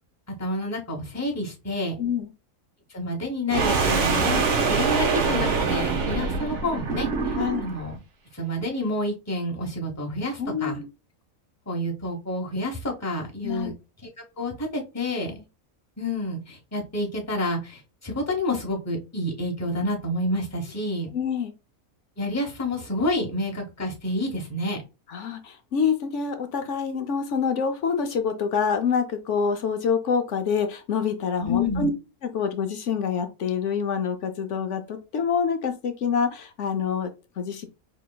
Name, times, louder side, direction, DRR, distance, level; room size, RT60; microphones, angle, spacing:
voice 1, 0.4-1.9 2.9-8.0 8.3-10.8 11.7-13.7 14.0-14.1 14.4-15.4 16.0-21.1 22.2-24.8 31.4-31.9, left 1 dB, 15° left, 0 dB, 0.8 m, -29 dB
voice 2, 2.0-2.3 7.4-7.7 10.4-10.9 13.4-13.7 21.1-21.5 25.1-31.9 32.3-37.7, left 6 dB, 65° left, 7 dB, 0.8 m, -26 dB
sound 1, 3.5-7.8, right 4 dB, 60° right, 1.1 m, -24 dB
4.9 x 3.0 x 2.2 m, 0.29 s
omnidirectional pair, 1.5 m